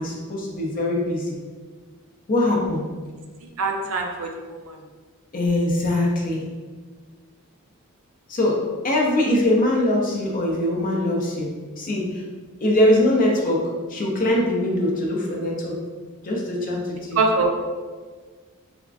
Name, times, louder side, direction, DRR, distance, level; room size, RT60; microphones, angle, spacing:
voice 1, 0.0-1.4 2.3-2.8 4.2-4.3 5.3-6.4 8.3-11.5 11.8-12.2 12.6-15.8 16.2-17.2, left 1 dB, 40° left, -1 dB, 0.5 m, -22 dB
voice 2, 3.6-4.6 17.2-17.5, right 3 dB, 65° right, 2 dB, 0.4 m, -23 dB
3.4 x 2.1 x 2.4 m, 1.5 s
head